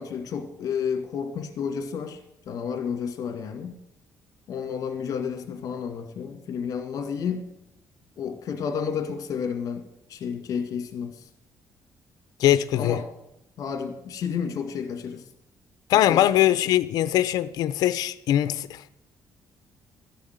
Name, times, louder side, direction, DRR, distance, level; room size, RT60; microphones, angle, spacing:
voice 1, 0.0-2.2 2.5-3.8 4.5-7.5 8.2-11.2 12.7-13.0 13.6-15.2 16.1-16.3, left 7 dB, 65° left, 2.2 m, -31 dB
voice 2, 12.4-13.0 15.9-18.8, left 12 dB, 85° left, 0.6 m, -21 dB
13.0 x 7.1 x 9.2 m
cardioid pair, 115°, 6 cm